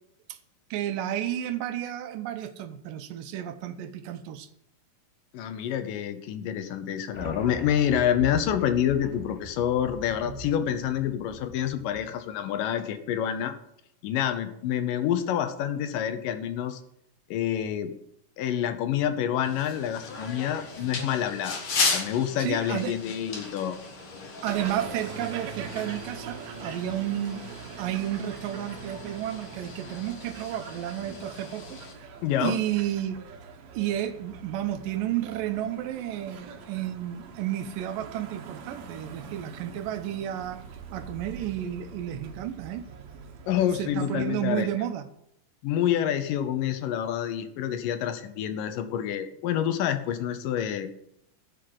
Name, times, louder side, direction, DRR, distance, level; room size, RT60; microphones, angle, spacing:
voice 1, 0.7-4.5 22.4-22.9 24.4-27.4 27.8-31.8 32.4-33.2 33.7-40.6 40.9-42.9 43.8-45.1, right 12 dB, 80° right, 9 dB, 2.5 m, -31 dB
voice 2, 5.3-13.5 14.0-16.8 17.3-17.9 18.4-21.6 21.9-23.8 32.2-32.6 43.5-44.7 45.6-50.9, left 10 dB, 80° left, 9 dB, 2.5 m, -27 dB
sound 1, 7.1-12.4, right 3 dB, 10° left, 2.9 m, -42 dB
sound 2, 19.4-31.9, left 4 dB, 45° left, 2.2 m, -36 dB
sound 3, 24.5-43.9, right 5 dB, 65° right, 2.1 m, -43 dB
12.5 x 5.1 x 7.8 m, 0.77 s
omnidirectional pair, 3.9 m